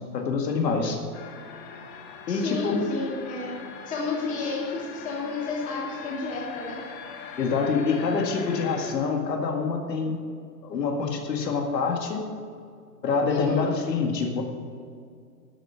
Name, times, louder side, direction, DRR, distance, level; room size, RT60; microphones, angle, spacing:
voice 1, 0.1-1.0 2.3-2.8 7.4-10.2 10.6-12.2 13.0-14.4, left 4 dB, 80° left, 2 dB, 2.2 m, -26 dB
sound 1, 1.1-8.9, left 6 dB, 35° left, 1.2 m, -42 dB
voice 2, 2.3-3.5 3.9-6.8 13.3-13.6, left 3 dB, 15° left, -4 dB, 2.5 m, -31 dB
12.5 x 7.0 x 7.2 m, 2.2 s
hypercardioid pair, 160°, 50 cm